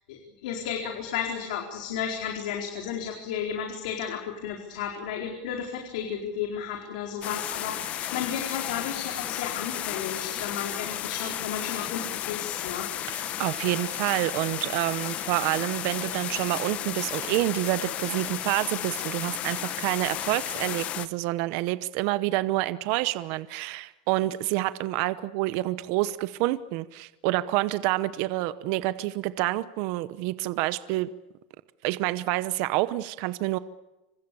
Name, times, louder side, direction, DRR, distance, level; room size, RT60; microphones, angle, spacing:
voice 1, 0.1-13.1, left 8 dB, 75° left, 2 dB, 4.5 m, -33 dB
sound 1, 7.2-21.1, left 12 dB, 35° left, 1.2 m, -33 dB
voice 2, 13.1-31.1 31.8-33.6, right 17 dB, 50° right, 14 dB, 0.8 m, -28 dB
27.0 x 25.5 x 7.0 m, 1.0 s
supercardioid pair, 160°, 4 cm